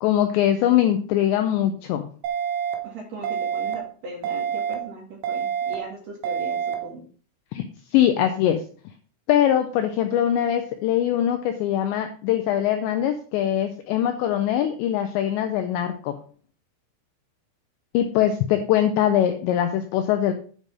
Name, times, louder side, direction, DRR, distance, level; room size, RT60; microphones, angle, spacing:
voice 1, 0.0-2.1 7.5-7.6 7.9-8.6 9.3-16.2 17.9-20.3, left 11 dB, 85° left, 7 dB, 2.5 m, -22 dB
sound 1, 2.2-2.7 3.2-3.7 4.2-4.7 5.2-5.7 6.2-6.7, right 8 dB, 80° right, 1.9 m, -26 dB
voice 2, 2.8-7.0, right 2 dB, 55° right, -1 dB, 3.0 m, -38 dB
9.1 x 5.4 x 4.8 m, 0.43 s
omnidirectional pair, 5.8 m